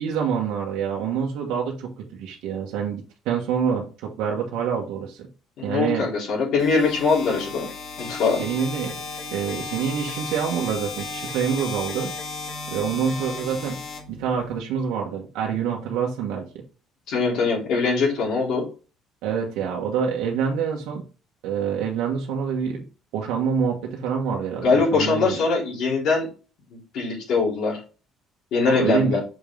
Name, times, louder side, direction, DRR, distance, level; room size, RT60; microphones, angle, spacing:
voice 1, 0.0-5.3 5.6-6.1 8.4-9.0 9.3-12.1 12.7-13.8 14.1-16.4 19.2-21.0 21.4-22.8 23.1-25.4 28.6-29.2, right 7 dB, 85° right, 0 dB, 1.3 m, -26 dB
voice 2, 5.6-7.7 8.0-8.4 17.1-18.7 24.6-26.3 26.7-27.8 28.5-29.2, left 4 dB, 60° left, -5 dB, 3.5 m, -22 dB
sound 1, 6.6-14.6, left 4 dB, 40° left, 2.0 m, -35 dB
6.2 x 5.2 x 3.8 m, 0.35 s
cardioid pair, 155°, 0 cm